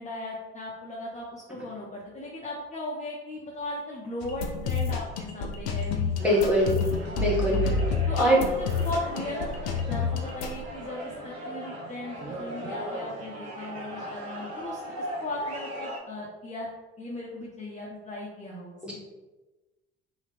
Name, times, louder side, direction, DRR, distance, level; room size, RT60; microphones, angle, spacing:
voice 1, 0.0-6.8 7.4-7.7 8.1-16.7 17.0-18.8, left 1 dB, 25° left, -4 dB, 0.7 m, -37 dB
sound 1, 4.2-10.6, left 4 dB, 75° left, 0.5 m, -29 dB
voice 2, 6.2-6.8 7.2-7.7 8.2-8.4 18.8-18.9, equal, 5° right, -5 dB, 1.4 m, -22 dB
sound 2, 6.2-16.0, equal, 50° right, 1.0 m, -38 dB
2.9 x 2.7 x 3.2 m, 1.1 s
hypercardioid pair, 50°, 30 cm